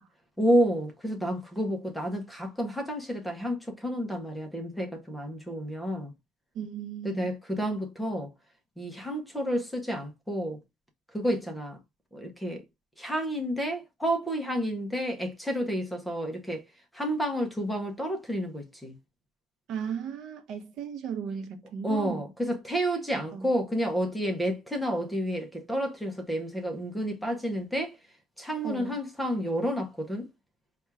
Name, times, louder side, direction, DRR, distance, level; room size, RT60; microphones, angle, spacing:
voice 1, 0.4-6.1 7.0-8.3 8.8-10.6 11.1-11.8 12.1-12.6 13.0-16.6 16.9-19.0 21.8-28.0 28.4-30.3, equal, ahead, 0.7 m, -30 dB
voice 2, 6.5-7.3 19.7-22.2 23.1-23.5 28.6-29.0, right 7 dB, 45° right, 0.7 m, -36 dB
4.3 x 2.3 x 3.3 m
cardioid pair, 170°, 0 cm